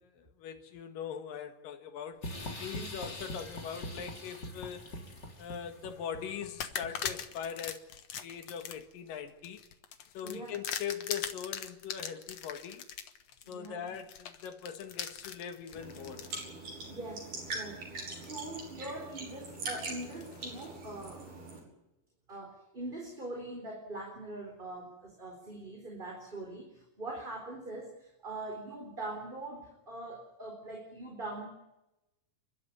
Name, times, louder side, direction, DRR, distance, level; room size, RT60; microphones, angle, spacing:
voice 1, 0.0-2.3 2.6-4.9 5.4-7.9 8.2-9.6 10.1-12.9 13.5-16.2, left 8 dB, 85° left, 3.3 m, -41 dB
sound 1, 2.2-7.4, left 1 dB, 30° left, 3.9 m, -43 dB
sound 2, 2.9-4.0 4.5-5.5 5.9-6.0 6.6-16.5 17.1-17.2 18.2-18.7 19.1-20.8, left 8 dB, 60° left, 2.2 m, -42 dB
voice 2, 10.2-10.6 13.4-13.9 16.8-17.8 18.2-21.2 22.3-31.5, right 2 dB, 15° right, 4.2 m, -42 dB
sound 3, 15.8-21.6, right 3 dB, 70° right, 7.2 m, -42 dB
29.5 x 12.5 x 9.8 m
omnidirectional pair, 3.8 m